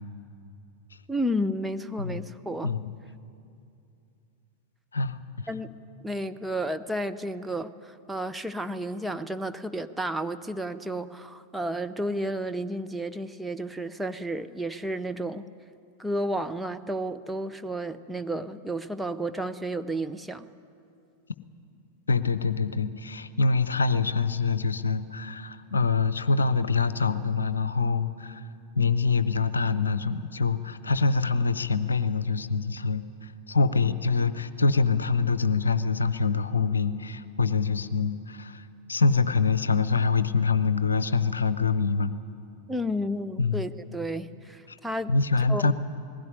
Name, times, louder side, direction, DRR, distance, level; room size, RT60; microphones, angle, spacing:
voice 1, 1.1-2.7 5.5-5.7 6.0-15.4 16.0-20.5 42.7-45.1 45.5-45.7, equal, 5° right, 7 dB, 0.7 m, -32 dB
voice 2, 4.9-5.5 22.1-28.4 28.8-42.1 43.4-43.7 45.1-45.7, left 4 dB, 75° left, 14 dB, 0.7 m, -25 dB
20.0 x 16.5 x 9.9 m, 2.5 s
figure-of-eight pair, 90°, 0 cm